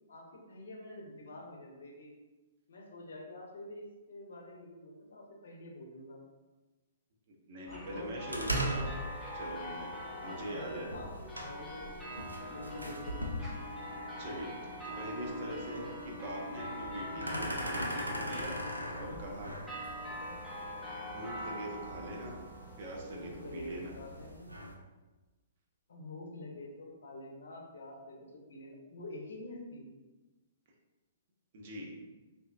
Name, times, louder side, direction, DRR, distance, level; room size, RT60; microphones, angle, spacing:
voice 1, 0.1-2.1 2.7-6.2 7.6-9.2 10.1-12.1 12.5-13.1 17.1-17.9 18.8-19.2 20.0-20.4 23.1-24.5 25.9-29.8, left 1 dB, 65° left, -1 dB, 0.7 m, -47 dB
voice 2, 7.5-8.9 9.3-9.9 10.2-10.9 14.2-18.6 18.9-19.6 21.0-22.4 22.8-24.0 31.5-31.9, right 1 dB, 45° right, -1 dB, 0.7 m, -42 dB
sound 1, 7.7-24.3, equal, 5° right, 0.6 m, -43 dB
sound 2, 8.3-24.7, right 1 dB, 90° right, 0.4 m, -41 dB
3.4 x 2.7 x 2.3 m, 1.2 s
figure-of-eight pair, 115°, 0 cm